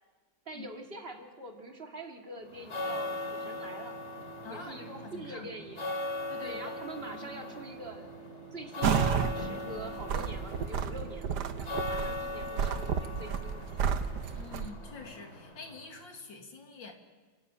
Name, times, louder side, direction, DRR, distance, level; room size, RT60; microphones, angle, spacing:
voice 1, 0.4-4.0 4.5-5.9 6.4-8.1 8.5-14.0, right 1 dB, 30° right, 2 dB, 2.7 m, -45 dB
sound 1, 2.5-16.0, left 1 dB, 35° left, 3.5 m, -39 dB
voice 2, 4.4-5.5 6.1-6.8 14.4-16.9, left 4 dB, 75° left, 3 dB, 3.2 m, -46 dB
sound 2, 8.8-9.4 9.8-14.7, right 7 dB, 65° right, 1.5 m, -31 dB
29.5 x 12.5 x 8.9 m, 1.3 s
omnidirectional pair, 2.0 m